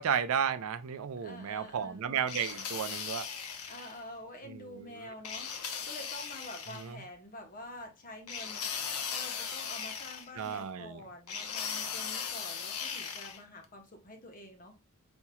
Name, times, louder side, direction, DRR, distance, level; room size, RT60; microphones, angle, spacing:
voice 1, 0.0-3.3 4.5-5.1 6.8-7.0 10.4-11.0, right 7 dB, 65° right, 0.4 m, -33 dB
voice 2, 1.2-2.1 3.7-8.7 9.1-14.7, left 1 dB, 40° left, 1.0 m, -47 dB
sound 1, 2.3-4.0 5.2-6.9 8.3-10.6 11.3-13.4, left 6 dB, 85° left, 0.7 m, -38 dB
4.4 x 2.8 x 2.3 m
head